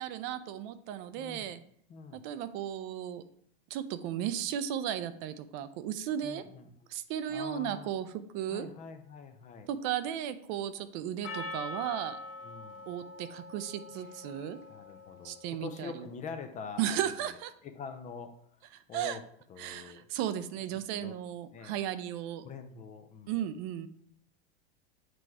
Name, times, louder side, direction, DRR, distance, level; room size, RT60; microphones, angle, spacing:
voice 1, 0.0-1.6 2.1-3.2 3.7-6.4 6.9-8.1 8.3-8.7 9.7-12.2 12.9-14.6 15.2-16.0 16.8-17.5 18.7-19.2 19.6-22.4 23.3-23.9, right 10 dB, 50° right, 12 dB, 0.5 m, -35 dB
voice 2, 1.2-1.5 1.9-2.2 6.2-6.7 7.3-7.9 8.5-9.7 12.4-12.9 14.7-20.0 21.0-21.1 21.5-21.8 22.4-23.4, left 5 dB, 25° left, 9 dB, 0.5 m, -45 dB
Percussion, 11.2-15.8, left 2 dB, 65° left, 1.2 m, -44 dB
7.8 x 3.0 x 4.6 m, 0.65 s
supercardioid pair, 135°, 31 cm